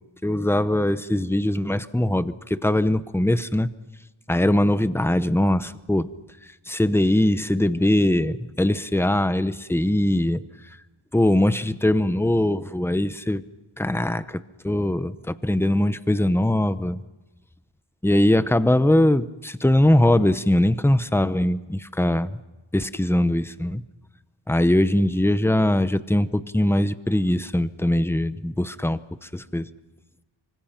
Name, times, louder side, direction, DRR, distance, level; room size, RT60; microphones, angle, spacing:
voice 1, 0.2-3.7 4.3-6.1 6.7-10.4 11.1-13.4 13.8-17.0 18.0-22.4 22.7-23.8 24.5-29.0 29.3-29.7, left 1 dB, 5° left, 13 dB, 0.8 m, -21 dB
25.5 x 24.5 x 5.9 m, 1.1 s
wide cardioid pair, 95°, 48 cm